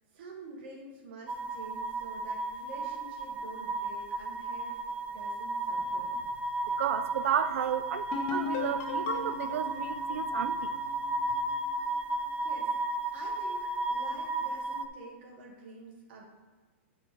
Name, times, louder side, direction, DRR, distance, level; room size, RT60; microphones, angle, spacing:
voice 1, 0.1-4.8 5.1-6.1 12.4-12.7 13.1-16.3, right 2 dB, 50° right, -2 dB, 1.7 m, -48 dB
sound 1, 1.3-14.9, right 2 dB, 15° right, 0.4 m, -34 dB
voice 2, 6.7-10.7, right 9 dB, 85° right, 11 dB, 0.4 m, -32 dB
sound 2, 8.1-11.7, left 6 dB, 40° left, 1.0 m, -37 dB
8.3 x 3.9 x 5.2 m, 1.4 s
supercardioid pair, 160°, 7 cm